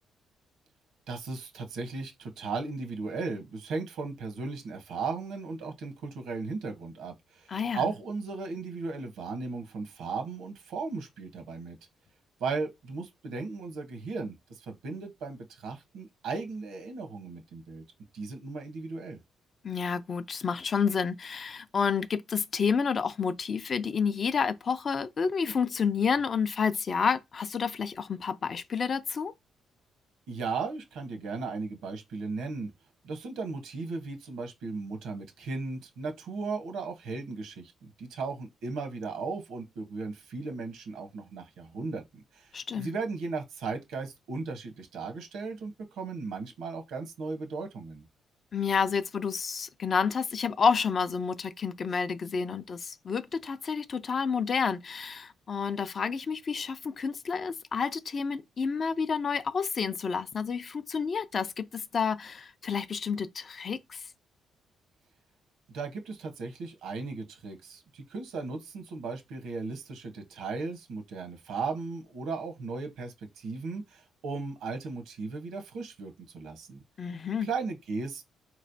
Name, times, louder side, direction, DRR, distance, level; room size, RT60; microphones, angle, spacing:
voice 1, 1.1-11.8 12.4-17.8 18.1-19.2 30.3-32.7 33.0-37.7 38.0-42.5 42.8-48.0 65.7-76.8 77.4-78.2, right 4 dB, 85° right, 1.0 m, -36 dB
voice 2, 7.5-7.9 19.6-29.3 42.5-42.9 48.5-64.0 77.0-77.5, left 6 dB, 45° left, 0.4 m, -29 dB
4.1 x 3.0 x 2.7 m
cardioid pair, 90°, 0 cm